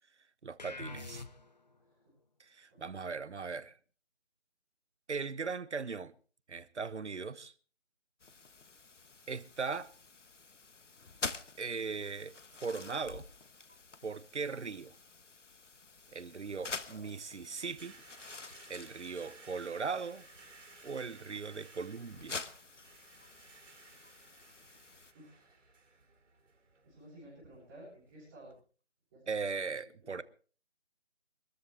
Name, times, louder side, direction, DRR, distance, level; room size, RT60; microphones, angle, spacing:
voice 1, 0.4-1.2 2.4-3.8 5.1-6.1 6.5-7.5 9.3-9.9 11.6-13.3 14.0-14.9 16.1-18.0 18.7-20.3 20.8-22.4 29.3-30.2, right 5 dB, 70° right, 1.1 m, -39 dB
sound 1, 0.6-1.7, left 2 dB, 35° left, 0.9 m, -45 dB
voice 2, 1.8-2.1 2.7-2.8 16.8-17.1 25.1-25.6 26.8-28.5 29.1-30.2, right 1 dB, 10° right, 7.0 m, -55 dB
sound 2, 8.2-25.1, left 4 dB, 80° left, 1.4 m, -48 dB
sound 3, 17.0-28.6, right 4 dB, 85° right, 4.3 m, -59 dB
25.0 x 13.5 x 3.4 m
figure-of-eight pair, 170°, 36 cm